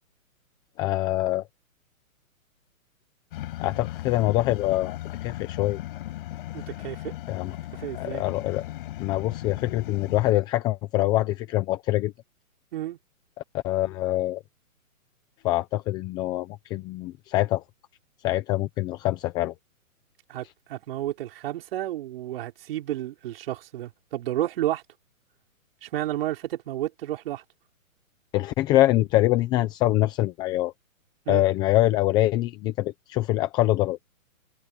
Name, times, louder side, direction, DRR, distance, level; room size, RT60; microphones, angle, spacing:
voice 1, 0.8-1.4 3.6-5.8 7.3-7.6 8.0-8.6 9.0-12.1 13.5-14.4 15.4-17.6 18.2-19.5 28.3-30.7 31.3-34.0, left 16 dB, 10° left, 0.7 m, -24 dB
sound 1, 3.3-10.3, left 15 dB, 40° left, 7.3 m, -37 dB
voice 2, 6.5-7.1 7.8-8.2 12.7-13.0 20.3-24.8 25.8-27.4 31.2-31.4, right 13 dB, 40° right, 5.1 m, -31 dB
hypercardioid pair, 155°, 42 cm